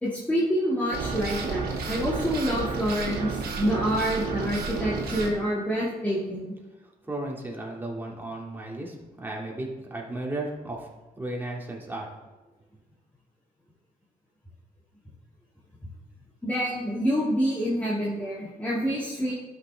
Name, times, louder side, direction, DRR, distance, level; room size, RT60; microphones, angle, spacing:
voice 1, 0.0-6.5 15.8-15.9 16.4-19.3, equal, 10° left, -7 dB, 1.9 m, -27 dB
sound 1, 0.9-5.3, right 5 dB, 85° right, 1.6 m, -31 dB
voice 2, 7.0-10.9 11.2-12.1, right 2 dB, 15° right, -2 dB, 2.1 m, -34 dB
12.0 x 6.2 x 3.4 m, 1.1 s
cardioid pair, 95°, 15 cm